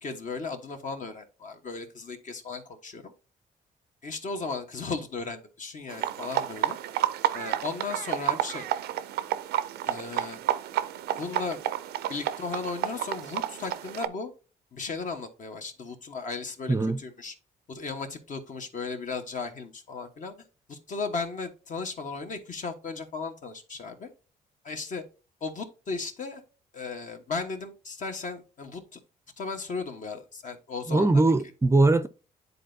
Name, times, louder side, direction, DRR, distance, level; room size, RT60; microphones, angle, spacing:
voice 1, 0.0-3.1 4.0-6.8 7.3-8.7 9.9-10.4 11.2-11.6 12.1-14.3 14.7-17.3 17.7-20.3 20.7-24.1 24.6-25.0 25.4-26.4 26.7-29.0 29.4-31.2, left 4 dB, 50° left, 1.2 m, -36 dB
sound 1, 5.9-14.1, right 12 dB, 85° right, 0.5 m, -30 dB
voice 2, 16.7-17.0 30.9-32.1, right 2 dB, 15° right, 0.5 m, -21 dB
10.0 x 4.0 x 2.7 m
cardioid pair, 80°, 16 cm